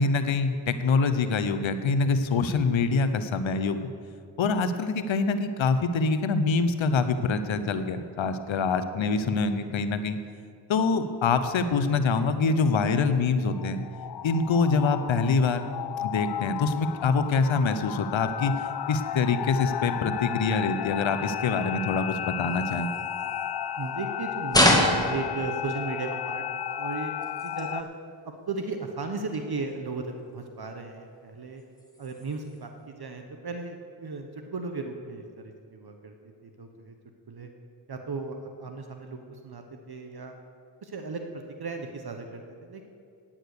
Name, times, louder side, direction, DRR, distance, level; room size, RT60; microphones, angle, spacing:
voice 1, 0.0-3.9 4.4-10.2 10.7-13.8 14.2-15.6 16.0-18.5 18.9-22.9, left 4 dB, 75° left, 10 dB, 0.8 m, -25 dB
sound 1, 13.5-27.8, left 10 dB, 55° left, 0.5 m, -33 dB
sound 2, 22.4-24.1 24.5-26.0 26.5-27.9 28.2-28.6 28.9-29.0 29.3-29.7 30.2-30.3 30.7-31.2 31.5-32.7, left 1 dB, 10° left, 2.0 m, -28 dB
voice 2, 23.8-27.9 28.2-31.6 32.0-36.1 36.4-36.9 37.3-37.5 37.9-40.4 40.8-42.9, right 4 dB, 50° right, 5 dB, 1.0 m, -36 dB
9.2 x 8.8 x 6.6 m, 2.3 s
cardioid pair, 40°, 47 cm